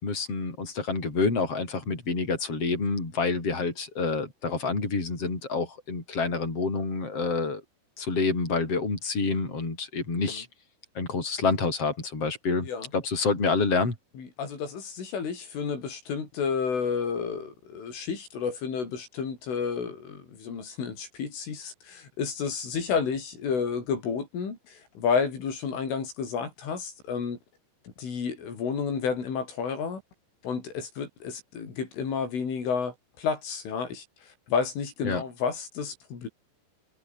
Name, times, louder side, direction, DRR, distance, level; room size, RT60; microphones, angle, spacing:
voice 1, 0.0-7.6 8.0-10.5 11.0-14.0 35.0-35.2, left 4 dB, 30° left, 7.8 m, -28 dB
voice 2, 14.2-27.4 28.0-30.0 30.4-36.3, left 6 dB, 80° left, 8.3 m, -31 dB
omnidirectional pair, 5.6 m